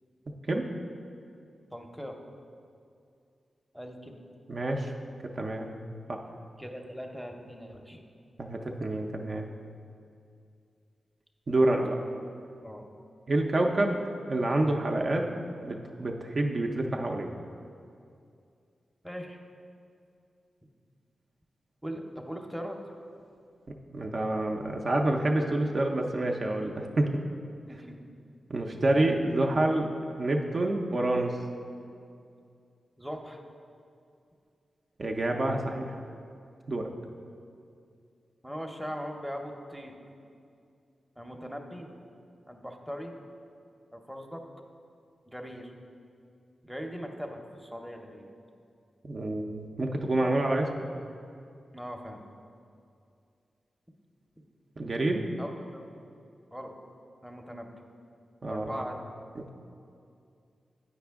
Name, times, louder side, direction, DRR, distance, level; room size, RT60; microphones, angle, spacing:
voice 1, 1.7-2.2 3.7-4.2 6.6-8.0 11.5-11.7 12.6-12.9 19.0-19.4 21.8-22.8 27.7-28.0 33.0-33.4 38.4-40.0 41.2-41.9 42.5-43.1 43.9-44.4 45.3-45.7 46.6-48.2 51.7-52.2 55.4-55.9 56.5-56.7 57.2-57.7 58.5-59.0, equal, ahead, 2 dB, 0.7 m, -40 dB
voice 2, 4.5-4.9 5.4-5.7 6.1-6.2 8.4-9.5 11.5-12.0 13.3-14.0 14.3-15.3 15.6-17.3 23.9-27.1 28.5-29.9 30.2-31.3 35.0-36.0 36.7-36.9 49.0-50.8 54.8-55.2 58.4-58.8 59.4-59.5, right 2 dB, 50° right, 1 dB, 0.5 m, -28 dB
8.0 x 4.9 x 3.5 m, 2.4 s
cardioid pair, 70°, 0 cm